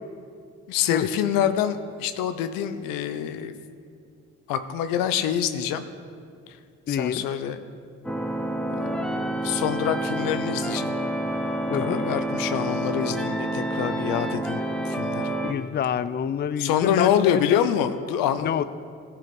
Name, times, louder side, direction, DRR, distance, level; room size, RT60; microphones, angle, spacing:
voice 1, 0.7-3.5 4.5-5.9 6.9-7.6 8.7-11.0 11.7-14.6 14.9-15.3 16.6-18.6, left 9 dB, 85° left, 10 dB, 0.6 m, -26 dB
voice 2, 6.9-7.3 11.7-12.1 15.4-17.6 18.4-18.6, left 8 dB, 30° left, 15 dB, 0.4 m, -27 dB
sound 1, 8.0-15.5, right 1 dB, ahead, 0.9 m, -28 dB
14.5 x 4.8 x 5.3 m, 2.2 s
supercardioid pair, 45°, 33 cm